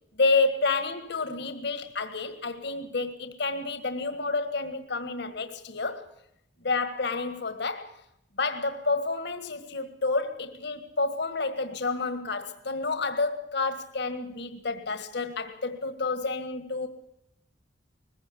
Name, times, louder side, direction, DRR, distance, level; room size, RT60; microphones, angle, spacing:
voice 1, 0.2-6.0 6.6-8.0 8.4-16.9, left 3 dB, 60° left, 1.7 m, -29 dB
20.5 x 16.0 x 8.5 m
head